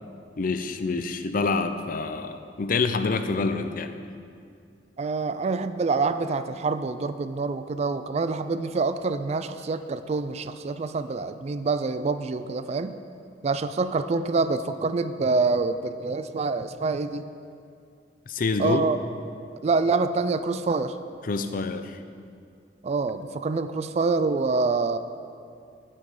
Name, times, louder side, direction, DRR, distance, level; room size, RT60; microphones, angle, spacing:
voice 1, 0.4-3.9 18.3-18.9 21.2-22.0, left 4 dB, 50° left, 9 dB, 0.5 m, -27 dB
voice 2, 5.0-13.0 13.4-17.2 18.6-19.0 19.6-21.0 22.8-25.0, right 4 dB, 35° right, 11 dB, 0.4 m, -26 dB
9.3 x 8.7 x 4.9 m, 2.4 s
head